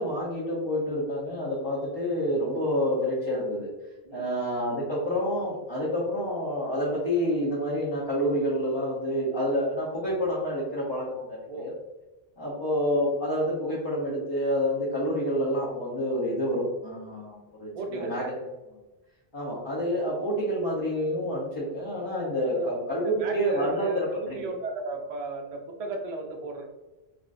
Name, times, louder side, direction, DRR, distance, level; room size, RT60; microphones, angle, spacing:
voice 1, 0.0-3.7 4.1-11.7 12.4-18.2 19.3-24.4, equal, 30° left, -8 dB, 0.6 m, -28 dB
voice 2, 17.7-18.3 22.5-22.7 23.0-26.6, right 3 dB, 50° right, 2 dB, 0.5 m, -35 dB
3.4 x 2.5 x 2.5 m, 1.1 s
omnidirectional pair, 1.1 m